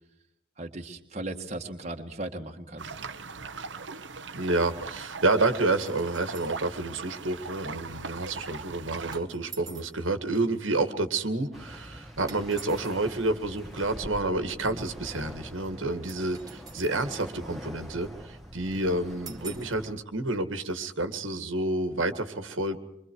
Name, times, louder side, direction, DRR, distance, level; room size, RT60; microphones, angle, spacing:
voice 1, 0.6-2.9, right 2 dB, 35° right, 2 dB, 1.7 m, -37 dB
sound 1, 2.8-9.2, right 4 dB, 65° right, 1.1 m, -40 dB
voice 2, 4.3-22.8, right 2 dB, 85° right, 8 dB, 1.9 m, -29 dB
sound 2, 5.8-6.6 9.1-10.0 12.3-13.0 16.1-17.0 19.3-19.8, right 6 dB, 20° right, 1.7 m, -46 dB
sound 3, 11.5-19.9, equal, ahead, 1.9 m, -44 dB
26.0 x 24.0 x 4.7 m, 0.83 s
head